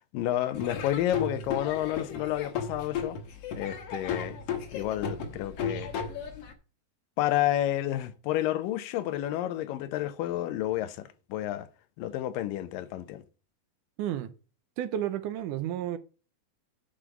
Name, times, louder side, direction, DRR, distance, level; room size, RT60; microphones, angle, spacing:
voice 1, 0.0-3.2 3.6-4.4 4.7-5.9 7.2-11.7 12.0-13.2, left 13 dB, 85° left, 2.5 m, -30 dB
Laughter / Drum, 0.6-6.5, left 6 dB, 55° left, 2.0 m, -35 dB
voice 2, 14.0-14.3 14.8-16.0, right 11 dB, 75° right, 2.1 m, -31 dB
9.9 x 5.1 x 5.9 m
omnidirectional pair, 3.9 m